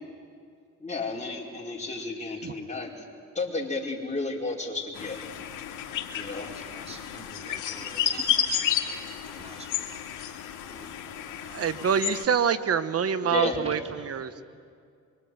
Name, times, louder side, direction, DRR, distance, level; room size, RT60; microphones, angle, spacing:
voice 1, 0.8-3.0 3.3-5.2 6.1-6.5 7.8-8.3 13.2-13.5, left 3 dB, 25° left, -1 dB, 5.0 m, -32 dB
sound 1, 4.9-12.2, left 9 dB, 85° left, 2.4 m, -31 dB
voice 2, 6.2-8.9 9.2-9.9 10.7-10.9 11.2-11.8 12.4-12.5 14.0-14.1, right 2 dB, 20° right, 3 dB, 3.1 m, -49 dB
voice 3, 11.5-14.3, right 7 dB, 50° right, 13 dB, 1.2 m, -26 dB
24.5 x 24.0 x 9.4 m, 2.2 s
cardioid pair, 90°, 30 cm